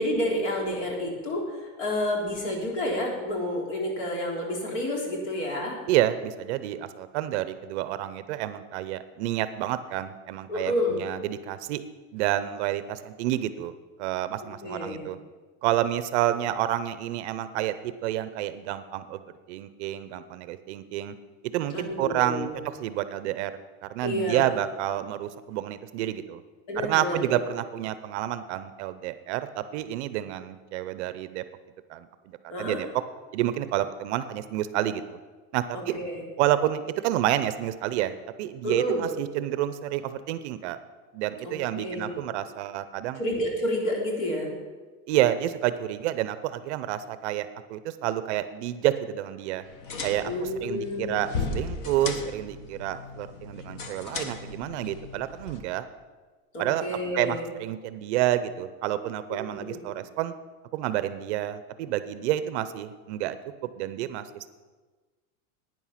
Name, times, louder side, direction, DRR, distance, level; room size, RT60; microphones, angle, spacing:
voice 1, 0.0-5.8 10.5-11.0 14.6-15.0 21.7-22.6 24.0-24.5 26.7-27.5 32.5-32.8 35.7-36.2 38.6-39.0 41.4-42.2 43.2-44.5 50.2-51.2 56.5-57.4 59.3-59.8, left 1 dB, 60° left, -1 dB, 3.5 m, -30 dB
voice 2, 5.9-11.8 12.1-13.7 14.0-15.2 15.6-19.2 19.5-21.1 21.5-23.6 23.9-26.4 26.8-31.4 31.9-32.1 32.6-32.9 33.3-35.2 35.5-36.0 36.4-38.1 38.4-40.8 41.1-43.2 45.1-49.6 50.0-50.3 50.6-55.9 56.6-56.8 57.1-60.3 60.7-63.4 63.8-64.3, right 13 dB, 50° right, 13 dB, 0.6 m, -29 dB
sound 1, 49.6-55.6, left 3 dB, 40° left, 1.2 m, -36 dB
11.0 x 9.3 x 5.7 m, 1.3 s
supercardioid pair, 165°, 43 cm